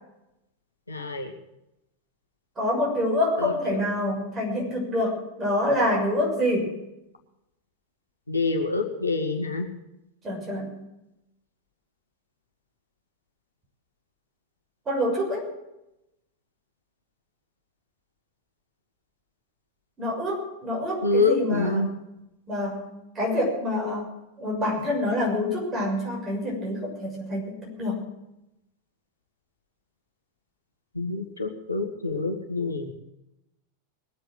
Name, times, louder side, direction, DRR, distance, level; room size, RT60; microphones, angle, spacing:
voice 1, 0.9-1.3 3.7-3.8 8.3-9.7 21.0-21.9 31.0-32.9, left 3 dB, 80° left, 3 dB, 2.1 m, -26 dB
voice 2, 2.6-6.7 10.2-10.7 14.9-15.5 20.0-21.9 22.5-22.9 23.1-24.1 24.4-28.0, left 1 dB, 20° right, -2 dB, 6.6 m, -26 dB
21.5 x 8.0 x 7.8 m, 0.88 s
figure-of-eight pair, 90°, 0 cm